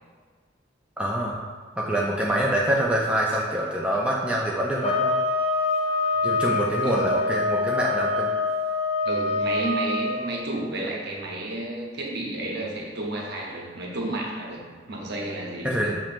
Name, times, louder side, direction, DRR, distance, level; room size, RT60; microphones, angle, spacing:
voice 1, 1.0-1.4 1.8-5.2 6.2-8.3 15.6-16.0, right 1 dB, 5° right, -4 dB, 0.4 m, -25 dB
sound 1, 4.8-10.2, left 3 dB, 30° left, 0.8 m, -25 dB
voice 2, 9.0-14.6 14.9-15.9, right 1 dB, 60° right, -2 dB, 0.9 m, -31 dB
7.0 x 3.0 x 2.5 m, 1.5 s
head